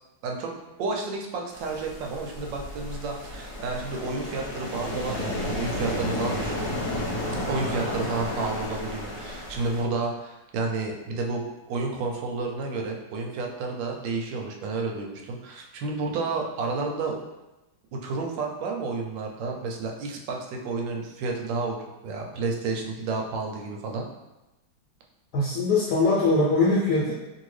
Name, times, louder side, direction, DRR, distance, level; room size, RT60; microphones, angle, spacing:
voice 1, 0.8-6.8 7.4-17.2 17.9-24.0, right 3 dB, 80° right, 1 dB, 1.3 m, -31 dB
sound 1, 1.5-9.8, left 1 dB, 45° left, 0.9 m, -32 dB
voice 2, 25.3-27.1, left 3 dB, 70° left, -5 dB, 1.0 m, -22 dB
2.8 x 2.7 x 3.1 m, 1.0 s
omnidirectional pair, 2.0 m